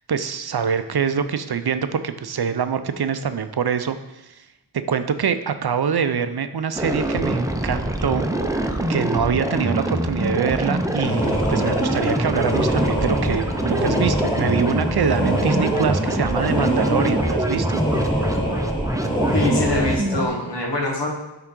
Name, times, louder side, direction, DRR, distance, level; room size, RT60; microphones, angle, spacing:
voice 1, 0.1-4.0 4.7-8.2 8.9-17.8, right 7 dB, 60° right, 10 dB, 0.5 m, -24 dB
sound 1, 6.8-20.3, right 1 dB, 10° right, 0.6 m, -24 dB
sound 2, 11.0-20.0, equal, 10° left, 1.3 m, -25 dB
voice 2, 19.3-21.1, left 2 dB, 70° left, -1 dB, 1.6 m, -24 dB
10.5 x 3.8 x 3.7 m, 0.98 s
wide cardioid pair, 45°, 43 cm